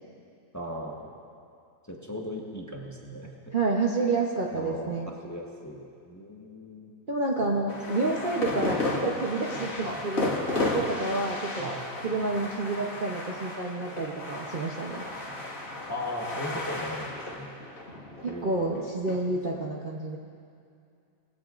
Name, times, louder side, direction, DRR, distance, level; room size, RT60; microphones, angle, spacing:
voice 1, 0.5-1.1 1.9-3.5 4.5-6.9 7.4-7.6 9.8-10.0 11.6-11.8 15.9-17.6 18.2-18.9 19.5-19.6, left 1 dB, 10° left, -1 dB, 1.0 m, -38 dB
voice 2, 3.5-5.1 7.1-10.3 10.6-11.7 12.0-15.0 18.2-20.2, right 3 dB, 40° right, -2 dB, 0.8 m, -29 dB
sound 1, 7.7-19.2, left 2 dB, 55° left, 2.2 m, -33 dB
20.5 x 16.0 x 2.5 m, 2.5 s
omnidirectional pair, 1.7 m